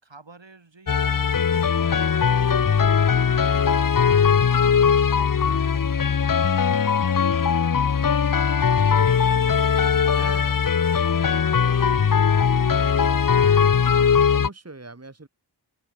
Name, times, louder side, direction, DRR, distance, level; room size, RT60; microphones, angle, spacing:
voice 1, 0.0-9.7 10.2-13.6, right 3 dB, 80° right, 6.0 m, -53 dB
sound 1, 0.9-14.5, left 6 dB, 50° left, 0.7 m, -20 dB
voice 2, 5.4-5.7 10.1-10.6 14.0-15.3, right 3 dB, 35° right, 2.1 m, -41 dB
wide cardioid pair, 55°, 44 cm